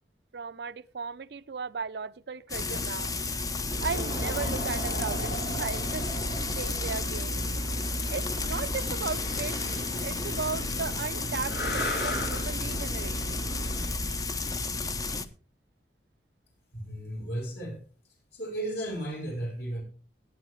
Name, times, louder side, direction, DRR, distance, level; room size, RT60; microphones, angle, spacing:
voice 1, 0.3-3.1 3.8-6.1 6.6-7.4 8.1-13.3, right 5 dB, 70° right, 16 dB, 0.5 m, -36 dB
Frying (food), 2.5-15.3, left 3 dB, 20° left, 0.6 m, -32 dB
sound 1, 3.7-13.9, right 1 dB, 85° left, 3.0 m, -35 dB
voice 2, 16.7-17.8 18.3-19.8, right 1 dB, 65° left, 0 dB, 4.7 m, -35 dB
18.0 x 9.3 x 3.1 m, 0.36 s
head